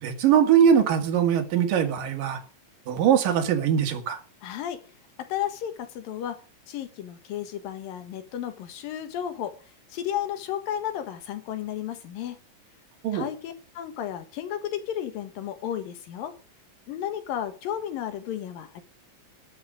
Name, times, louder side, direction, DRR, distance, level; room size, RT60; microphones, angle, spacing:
voice 1, 0.0-2.4 2.9-4.2 13.0-13.3, right 8 dB, 80° right, 3.3 m, -21 dB
voice 2, 4.4-4.8 5.2-6.4 6.7-9.6 9.9-12.4 13.1-16.4 16.9-18.8, left 10 dB, 90° left, 3.3 m, -33 dB
12.0 x 6.4 x 9.3 m
omnidirectional pair, 3.9 m